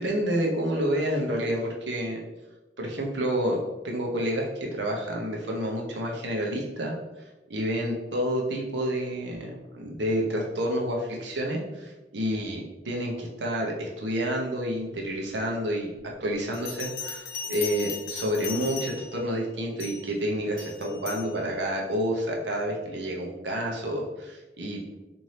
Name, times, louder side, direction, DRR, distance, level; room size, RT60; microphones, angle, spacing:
voice 1, 0.0-2.2 2.8-7.0 7.5-15.9 16.2-24.8, equal, 75° right, 0 dB, 0.8 m, -29 dB
Bell, 16.5-19.2 19.8-20.1 20.6-21.3, left 6 dB, 55° left, 0.8 m, -37 dB
4.2 x 2.7 x 3.2 m, 1.1 s
head